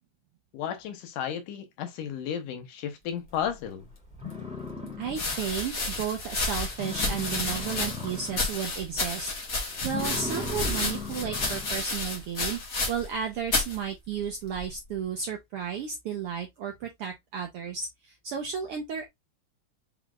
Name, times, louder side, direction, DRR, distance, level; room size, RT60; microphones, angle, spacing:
voice 1, 0.5-3.9, left 9 dB, 85° left, 2.5 m, -33 dB
sound 1, 3.7-3.8 4.1-5.5 5.9-6.0 6.4-6.5 6.7-8.6 9.0-9.3 9.8-11.8, left 4 dB, 5° right, 1.7 m, -37 dB
sound 2, 4.0-4.1 5.1-13.2 13.5-13.8 14.5-14.9, left 2 dB, 40° left, 1.3 m, -31 dB
voice 2, 5.0-9.3 9.6-12.6 12.9-19.1, right 7 dB, 80° right, 1.3 m, -33 dB
5.8 x 3.7 x 2.3 m
omnidirectional pair, 3.5 m